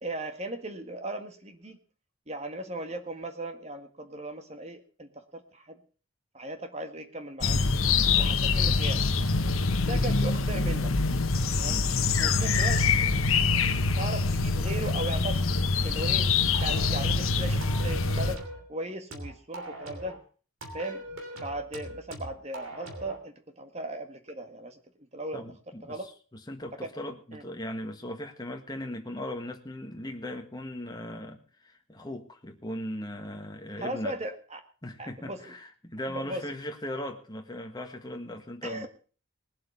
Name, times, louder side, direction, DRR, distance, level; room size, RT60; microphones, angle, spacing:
voice 1, 0.0-1.8 2.3-5.8 6.3-7.6 8.1-9.1 9.8-10.9 11.6-11.8 12.2-12.8 13.9-15.4 15.8-16.3 16.6-18.4 18.7-20.2 20.7-21.0 21.3-24.8 25.1-25.4 25.8-26.1 26.8-26.9 27.3-27.4 33.8-34.6 35.0-35.6 36.1-36.4 38.6-38.9, right 1 dB, 30° right, 7 dB, 1.7 m, -37 dB
sound 1, 7.4-18.4, left 4 dB, 75° left, 1.1 m, -25 dB
sound 2, 16.5-17.2 17.6-18.7 19.1-20.2 20.6-23.2, right 1 dB, 75° right, 3.1 m, -41 dB
voice 2, 25.3-26.0 26.5-34.2 34.8-38.9, left 1 dB, 20° left, 3 dB, 1.7 m, -38 dB
20.0 x 7.8 x 5.5 m, 0.39 s
head